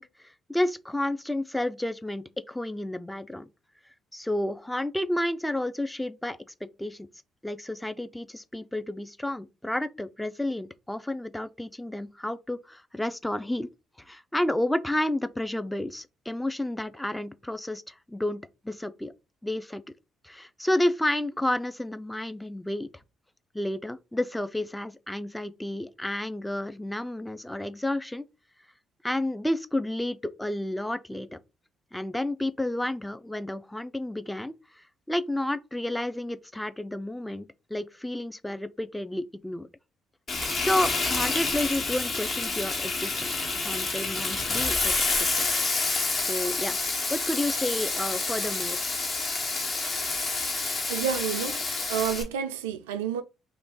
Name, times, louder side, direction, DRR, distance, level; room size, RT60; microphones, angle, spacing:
voice 1, 0.0-3.5 4.1-6.4 6.8-7.1 7.4-13.7 14.0-18.4 18.6-19.1 19.4-19.8 20.2-22.9 23.5-28.2 29.0-31.4 31.9-39.7 40.6-44.9 45.3-45.5 46.2-46.8 47.1-48.9, left 1 dB, 10° left, 0.4 m, -31 dB
Frying (food), 40.3-52.2, left 3 dB, 45° left, 1.2 m, -28 dB
voice 2, 50.9-51.6 51.9-53.2, right 9 dB, 80° right, 0.3 m, -29 dB
2.7 x 2.5 x 3.7 m
hypercardioid pair, 45°, 0 cm